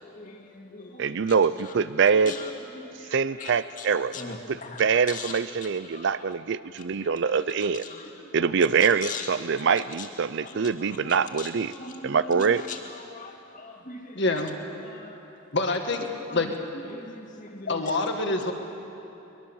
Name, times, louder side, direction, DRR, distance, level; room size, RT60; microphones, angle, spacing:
voice 1, 0.1-1.3 2.3-2.5 2.8-3.5 3.8-4.8 5.1-5.3 5.9-6.3 7.0-7.1 7.6-8.2 9.0-9.3 9.6-9.7 10.0-10.1 10.4-12.8 13.1-14.2 14.8-15.2 16.9-17.8, left 4 dB, 40° left, 2 dB, 2.2 m, -40 dB
voice 2, 1.0-2.3 3.1-4.1 4.5-7.9 8.3-11.7 12.0-12.6, right 6 dB, 60° right, 15 dB, 0.5 m, -24 dB
voice 3, 14.2-14.5 15.5-16.1 16.3-16.5 17.7-18.5, left 2 dB, 55° left, 4 dB, 1.9 m, -26 dB
22.5 x 21.5 x 7.2 m, 2.9 s
head